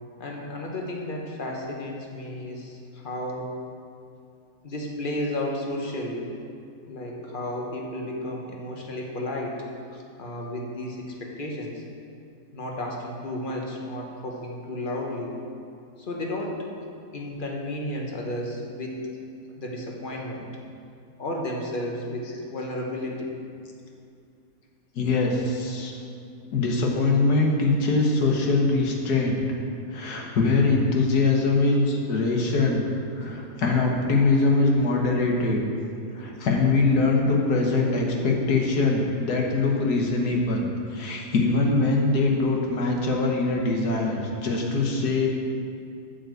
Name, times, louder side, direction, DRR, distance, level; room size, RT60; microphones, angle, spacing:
voice 1, 0.2-3.6 4.6-6.3 6.9-9.6 10.2-11.8 12.5-15.4 16.0-16.7 17.1-19.1 19.6-20.5 21.2-23.3, left 1 dB, 35° left, -1 dB, 1.2 m, -32 dB
voice 2, 25.0-25.9 26.5-29.4 29.9-32.8 33.2-35.6 36.1-40.6 40.9-45.3, left 3 dB, 70° left, 0 dB, 1.7 m, -22 dB
8.5 x 5.4 x 7.8 m, 2.4 s
omnidirectional pair, 1.8 m